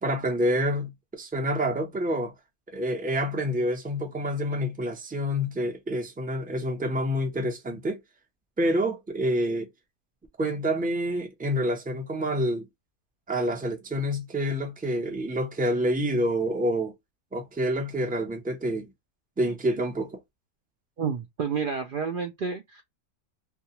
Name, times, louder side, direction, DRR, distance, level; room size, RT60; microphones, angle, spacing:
voice 1, 0.0-2.3 2.7-8.0 8.6-9.7 10.4-12.7 13.3-16.9 17.3-18.9 19.4-20.2, equal, 10° right, 0.4 m, -27 dB
voice 2, 21.0-22.8, right 6 dB, 85° right, 0.4 m, -30 dB
2.3 x 2.3 x 2.8 m
omnidirectional pair, 1.5 m